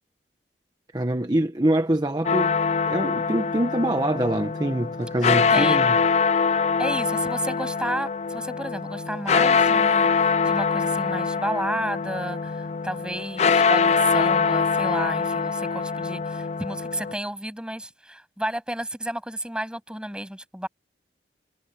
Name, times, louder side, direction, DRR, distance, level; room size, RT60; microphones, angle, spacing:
voice 1, 0.9-2.6 2.9-6.0, right 1 dB, 25° right, 1.1 m, -24 dB
sound 1, 2.2-17.1, left 5 dB, 40° left, 0.4 m, -23 dB
voice 2, 5.5-5.9 6.8-20.7, right 1 dB, 5° right, 7.9 m, -32 dB
head